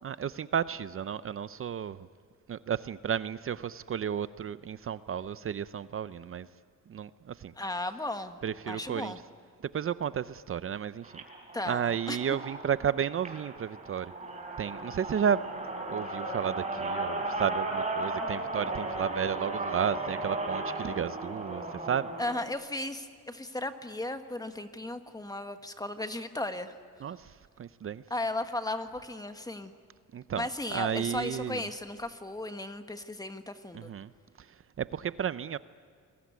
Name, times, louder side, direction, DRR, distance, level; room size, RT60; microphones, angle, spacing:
voice 1, 0.0-2.1 2.5-6.5 6.9-7.5 8.4-9.1 9.7-11.1 11.7-14.1 14.6-15.4 15.9-22.1 27.0-27.3 27.6-28.0 30.1-31.6 33.7-34.1 34.8-35.6, right 8 dB, 45° right, 15 dB, 0.6 m, -32 dB
voice 2, 7.6-8.4 8.7-9.2 11.5-12.4 22.2-26.7 28.1-29.7 30.4-33.9, left 2 dB, 10° left, 8 dB, 1.4 m, -35 dB
sound 1, 11.0-22.4, right 2 dB, 20° right, 4.7 m, -36 dB
28.5 x 21.5 x 9.5 m, 2.2 s
cardioid pair, 145°, 31 cm